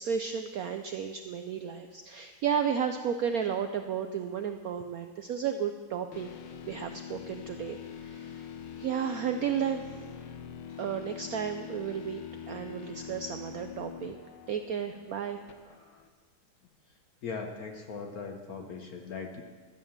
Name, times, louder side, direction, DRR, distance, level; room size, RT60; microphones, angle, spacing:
voice 1, 0.0-6.3 6.7-8.5 8.8-10.1 10.8-12.2 12.5-14.1 14.5-15.4, right 7 dB, 85° right, 7 dB, 0.7 m, -33 dB
sound 1, 6.1-16.1, left 7 dB, 80° left, 1.7 m, -44 dB
voice 2, 16.9-19.4, left 5 dB, 55° left, 4 dB, 1.2 m, -40 dB
12.5 x 7.7 x 7.1 m, 1.5 s
omnidirectional pair, 2.2 m